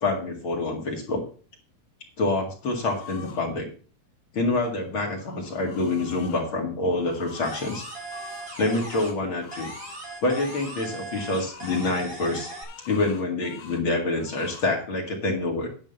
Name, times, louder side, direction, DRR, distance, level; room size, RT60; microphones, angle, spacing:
voice 1, 0.0-1.2 2.2-3.7 4.3-7.8 8.6-9.7 10.2-12.5 12.9-15.7, left 2 dB, 40° left, 0 dB, 2.4 m, -26 dB
sound 1, 2.6-3.4 4.8-6.4 6.9-10.8 11.1-12.0 12.4-13.8 14.1-14.7, left 6 dB, 60° left, 2.7 m, -45 dB
sound 2, 7.4-9.2 9.5-12.6, right 2 dB, 15° right, 3.1 m, -39 dB
11.0 x 5.3 x 7.0 m, 0.39 s
omnidirectional pair, 4.4 m